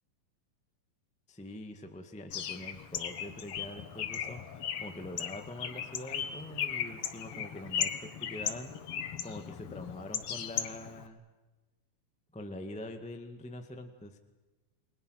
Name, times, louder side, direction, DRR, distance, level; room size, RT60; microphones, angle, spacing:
voice 1, 1.3-8.7 9.2-11.2 12.3-14.2, left 1 dB, 5° left, 6 dB, 0.7 m, -44 dB
Bird, 2.3-11.1, left 8 dB, 55° left, 1.8 m, -37 dB
30.0 x 21.5 x 6.5 m, 1.2 s
omnidirectional pair, 3.9 m